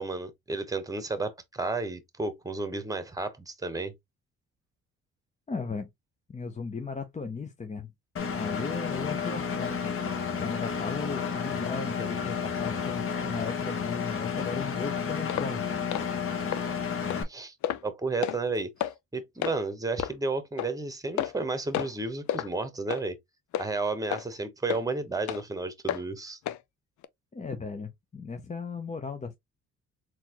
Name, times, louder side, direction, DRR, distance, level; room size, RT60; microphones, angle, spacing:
voice 1, 0.0-3.9 17.3-17.5 17.8-18.7 19.1-23.2 23.6-26.4, right 3 dB, 10° right, 1.0 m, -32 dB
voice 2, 5.5-5.9 6.3-7.9 8.4-9.9 10.4-15.6 27.3-29.3, left 4 dB, 25° left, 0.7 m, -36 dB
Engine, 8.2-17.2, left 6 dB, 45° left, 1.2 m, -31 dB
sound 1, 15.3-15.5 15.9-16.1 16.5-16.6 17.1-17.2 17.6-17.9 18.2-18.4 18.8-18.9 19.4-19.6 20.0-20.1 20.6-20.7 21.2-21.4 21.7-22.0 22.3-22.5 22.9-23.0 23.5-23.7 24.1-24.3 24.7-24.8 25.3-25.4 25.9-26.0 26.5-26.6 27.0-27.1, left 11 dB, 70° left, 0.5 m, -31 dB
4.0 x 2.9 x 2.9 m
cardioid pair, 90°, 30 cm